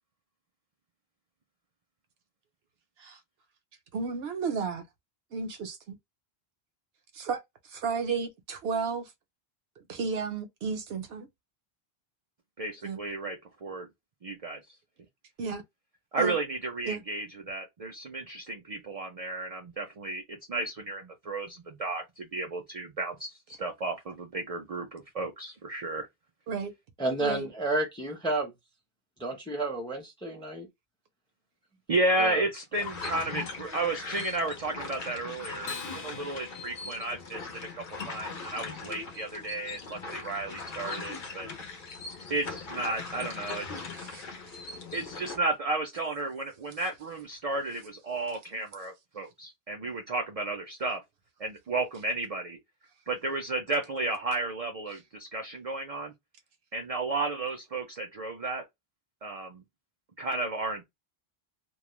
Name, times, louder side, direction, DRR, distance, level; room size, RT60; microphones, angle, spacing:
voice 1, 3.9-4.8 5.3-6.0 7.1-7.4 7.7-9.1 9.9-11.3 12.8-13.0 15.4-15.6 16.2-16.4 16.9-17.0 26.5-26.7 27.2-27.5 44.0-44.3, right 5 dB, 75° right, 0.8 m, -33 dB
voice 2, 12.6-13.9 14.2-14.6 16.1-26.1 31.9-41.5 42.3-43.9 44.9-51.0 51.4-52.6 53.1-56.1 56.7-58.6 59.2-59.6 60.2-60.8, right 2 dB, 50° right, 0.5 m, -33 dB
voice 3, 27.0-28.5 29.2-30.7 32.2-32.4, right 2 dB, 5° left, 0.5 m, -31 dB
sound 1, 32.7-45.4, left 4 dB, 55° left, 0.8 m, -40 dB
Acoustic guitar, 35.6-38.3, left 6 dB, 90° left, 1.0 m, -45 dB
2.3 x 2.0 x 2.9 m
omnidirectional pair, 1.1 m